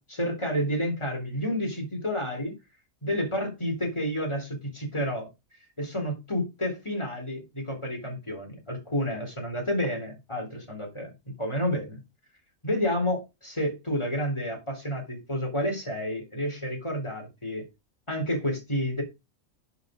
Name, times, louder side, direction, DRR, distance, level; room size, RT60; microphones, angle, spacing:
voice 1, 0.0-2.5 3.0-5.3 5.8-11.1 11.4-12.0 12.6-17.7 18.1-19.0, equal, 20° left, 3.5 m, -30 dB
10.5 x 5.1 x 5.0 m
omnidirectional pair, 1.4 m